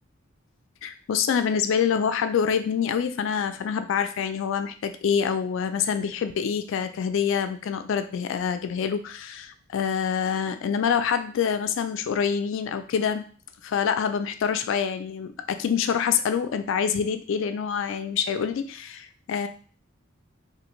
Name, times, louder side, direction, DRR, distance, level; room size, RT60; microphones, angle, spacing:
voice 1, 0.8-13.2 13.6-19.5, left 7 dB, 65° left, 9 dB, 0.3 m, -26 dB
3.3 x 2.5 x 2.9 m, 0.41 s
head